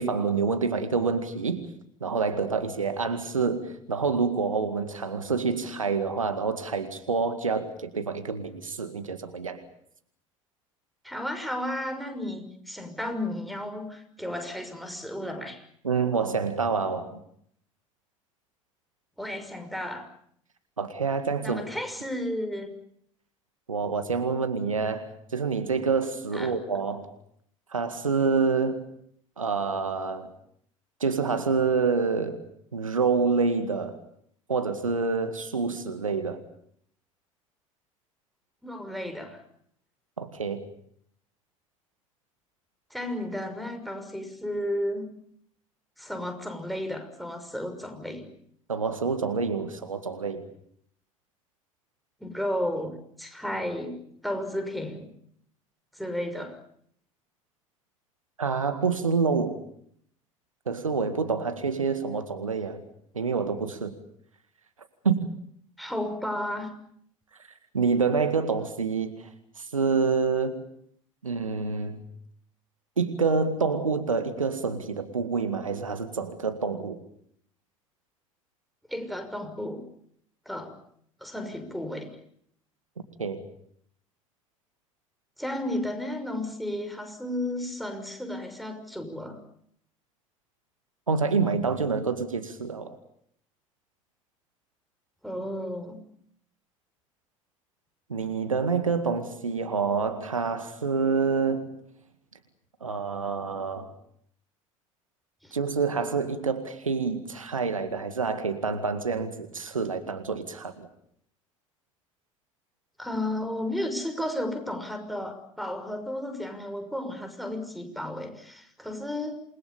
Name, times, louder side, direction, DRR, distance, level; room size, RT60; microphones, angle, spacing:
voice 1, 0.0-1.6 2.0-9.6 15.8-17.2 20.8-21.6 23.7-27.1 27.7-28.8 29.4-30.3 31.0-32.4 32.7-34.0 34.5-36.4 40.2-40.6 48.7-50.5 58.4-59.5 60.7-62.8 63.1-63.9 65.0-65.3 67.7-69.2 69.6-70.6 71.2-72.0 73.0-77.0 83.2-83.4 91.1-93.0 98.1-101.7 102.8-103.9 105.5-110.9, right 5 dB, 80° right, 9 dB, 2.0 m, -27 dB
voice 2, 11.0-15.7 19.2-20.1 21.4-22.8 26.3-26.6 38.6-39.4 42.9-45.1 46.0-48.3 52.2-55.1 55.9-56.6 65.8-66.7 78.9-79.8 80.5-80.8 81.2-82.1 85.4-89.4 95.2-96.0 105.4-105.5 113.0-119.4, left 1 dB, ahead, 6 dB, 6.1 m, -33 dB
28.5 x 22.0 x 7.0 m, 0.67 s
figure-of-eight pair, 65°, 17 cm